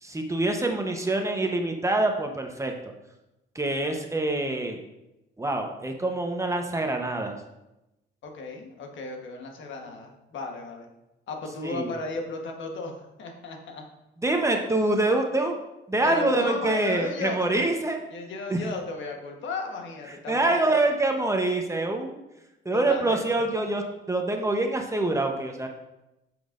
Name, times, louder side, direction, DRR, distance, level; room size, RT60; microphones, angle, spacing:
voice 1, 0.0-2.7 3.5-4.8 5.4-7.4 11.6-11.9 14.2-15.5 15.9-18.0 18.5-18.6 20.1-22.2 22.6-25.7, right 2 dB, 15° right, 3 dB, 0.9 m, -25 dB
voice 2, 8.2-10.9 11.3-12.9 13.2-13.8 16.0-17.7 18.1-20.6 22.7-23.5, left 3 dB, 70° left, 2 dB, 1.2 m, -35 dB
9.0 x 6.2 x 2.5 m, 0.95 s
cardioid pair, 90°, 20 cm